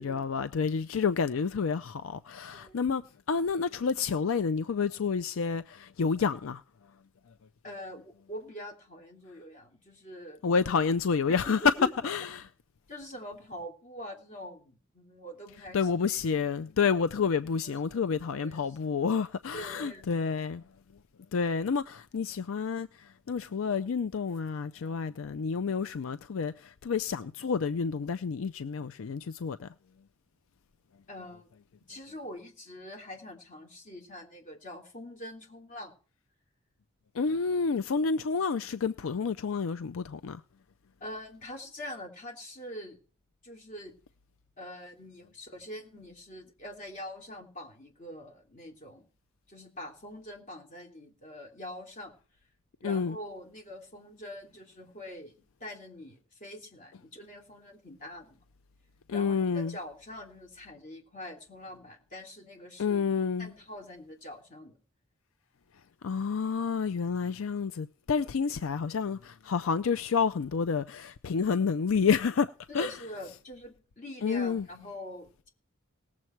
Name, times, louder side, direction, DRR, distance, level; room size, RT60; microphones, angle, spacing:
voice 1, 0.0-3.0 3.3-6.6 10.4-11.6 12.0-12.5 15.7-20.6 21.3-29.7 37.1-40.4 52.8-53.2 59.1-59.8 62.8-63.5 66.0-72.5 72.7-72.9 74.2-74.7, left 5 dB, 75° left, 0.5 m, -29 dB
voice 2, 2.5-2.8 7.6-10.4 11.3-11.9 12.9-15.9 17.5-18.6 19.5-20.4 31.1-31.5 31.9-35.9 41.0-43.0 43.4-43.9 44.6-49.1 49.5-52.1 52.8-58.4 59.1-63.0 63.4-64.8 72.7-75.5, left 1 dB, 40° left, 3.1 m, -44 dB
18.5 x 7.4 x 4.5 m
head